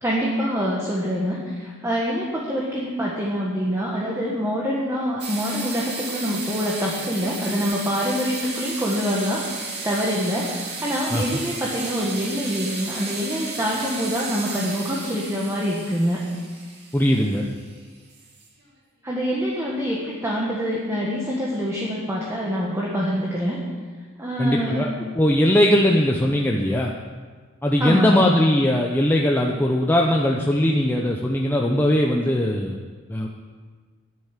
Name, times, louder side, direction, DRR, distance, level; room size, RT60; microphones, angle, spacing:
voice 1, 0.0-16.3 19.0-23.6 24.2-24.9 27.8-28.3, equal, 15° right, -4 dB, 1.5 m, -25 dB
sound 1, 5.2-18.6, right 3 dB, 55° right, 2.4 m, -34 dB
voice 2, 16.9-17.5 24.4-24.9 25.2-26.9 27.6-32.8 33.1-33.3, left 1 dB, 10° left, 0 dB, 0.7 m, -20 dB
10.5 x 9.3 x 7.3 m, 1.5 s
head